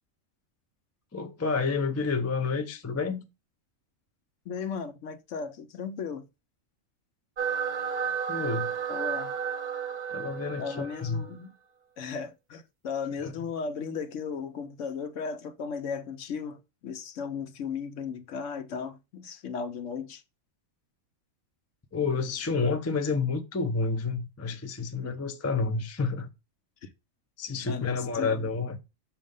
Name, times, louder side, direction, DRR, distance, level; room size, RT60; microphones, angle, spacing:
voice 1, 1.1-3.2 8.3-8.7 10.1-11.2 13.2-13.3 21.9-26.3 27.4-28.8, left 4 dB, 25° left, 0.3 m, -29 dB
voice 2, 4.4-6.3 8.9-9.3 10.6-11.5 12.0-20.2 25.0-25.2 26.8-26.9 27.7-28.4, left 6 dB, 70° left, 1.0 m, -36 dB
sound 1, 7.4-11.4, right 7 dB, 45° right, 0.6 m, -32 dB
6.3 x 2.8 x 5.2 m
omnidirectional pair, 1.4 m